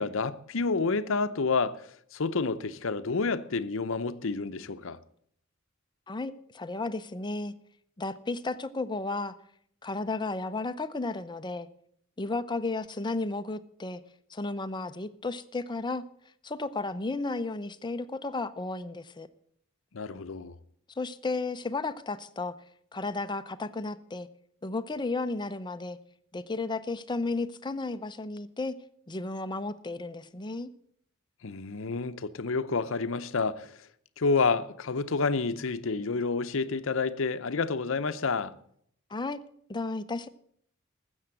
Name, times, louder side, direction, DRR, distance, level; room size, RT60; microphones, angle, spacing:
voice 1, 0.0-5.0 19.9-20.6 31.4-33.9 34.2-38.6, left 4 dB, 70° left, 0.7 m, -29 dB
voice 2, 6.1-7.5 8.0-9.4 9.8-11.7 12.2-14.0 14.3-16.0 16.4-19.3 21.0-22.6 22.9-24.3 24.6-26.0 26.3-28.7 29.1-30.7 39.1-39.4 39.7-40.3, left 3 dB, 20° left, 0.6 m, -33 dB
13.0 x 8.0 x 7.6 m
head